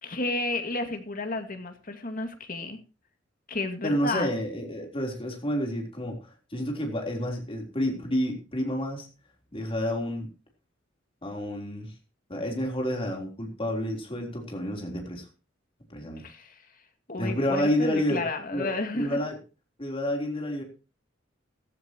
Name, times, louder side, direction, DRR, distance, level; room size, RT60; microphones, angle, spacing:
voice 1, 0.0-2.8 3.5-4.3 16.2-16.6 17.1-19.2, left 2 dB, 45° left, 6 dB, 2.2 m, -32 dB
voice 2, 3.8-9.1 9.5-10.3 11.2-11.9 12.3-15.3 15.9-16.2 17.2-18.2 18.5-19.4 19.8-20.6, equal, 30° left, 2 dB, 3.8 m, -29 dB
15.0 x 14.0 x 3.0 m, 0.32 s
head